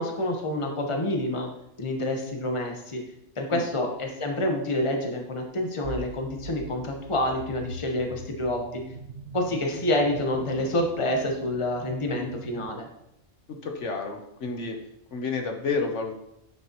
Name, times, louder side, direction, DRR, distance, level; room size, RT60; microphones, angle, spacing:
voice 1, 0.0-1.5 1.8-3.0 3.4-8.8 9.3-12.9, left 1 dB, 25° left, 2 dB, 1.1 m, -28 dB
sound 1, 5.8-12.7, right 2 dB, 65° right, 1.2 m, -43 dB
voice 2, 13.5-14.8 15.1-16.2, left 4 dB, 70° left, 3 dB, 1.3 m, -30 dB
11.0 x 6.3 x 3.0 m, 0.82 s
omnidirectional pair, 1.3 m